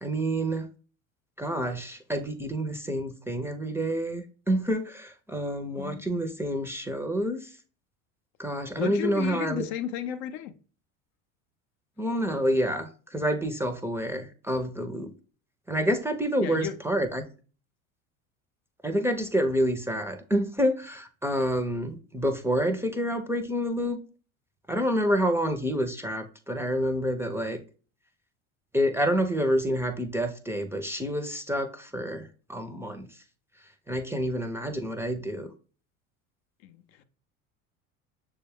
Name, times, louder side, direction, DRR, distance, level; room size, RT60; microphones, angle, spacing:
voice 1, 0.0-0.7 1.4-7.5 8.4-9.6 12.0-15.1 15.7-17.2 18.8-24.0 24.7-27.6 28.7-33.1 33.9-35.5, equal, 5° right, 0.6 m, -28 dB
voice 2, 8.7-10.5 16.4-16.8 36.6-37.0, left 10 dB, 60° left, 0.7 m, -33 dB
6.6 x 2.3 x 3.5 m
hypercardioid pair, 75°, 41 cm